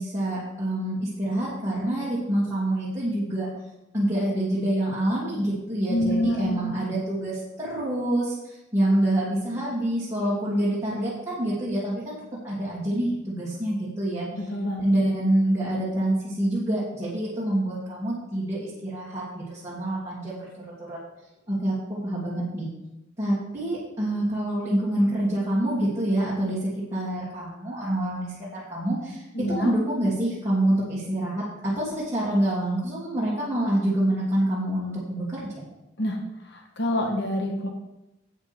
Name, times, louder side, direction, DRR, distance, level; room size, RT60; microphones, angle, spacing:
voice 1, 0.0-3.5 3.9-8.3 8.7-12.2 12.4-14.2 14.8-20.5 20.9-21.0 21.5-22.7 23.2-29.2 29.5-35.5, right 1 dB, 15° right, -10 dB, 2.7 m, -26 dB
voice 2, 5.9-6.7 14.3-14.9 29.3-29.7 36.0-36.2 36.5-37.7, equal, 60° left, 2 dB, 1.3 m, -27 dB
10.5 x 8.4 x 3.6 m, 0.91 s
head